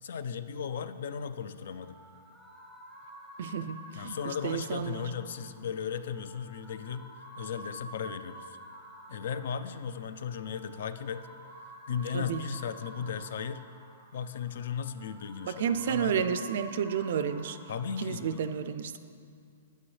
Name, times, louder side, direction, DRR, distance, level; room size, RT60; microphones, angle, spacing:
voice 1, 0.0-2.0 3.9-7.1 7.4-8.6 9.1-11.3 11.9-13.6 14.1-16.3 17.7-18.4, left 7 dB, 60° left, 12 dB, 0.4 m, -36 dB
sound 1, 1.4-18.4, right 1 dB, 5° left, 0.7 m, -50 dB
voice 2, 3.4-5.1 12.1-12.4 15.5-17.6 18.0-19.0, right 7 dB, 55° right, 11 dB, 0.4 m, -31 dB
8.9 x 8.7 x 3.2 m, 2.4 s
hypercardioid pair, 165°, 0 cm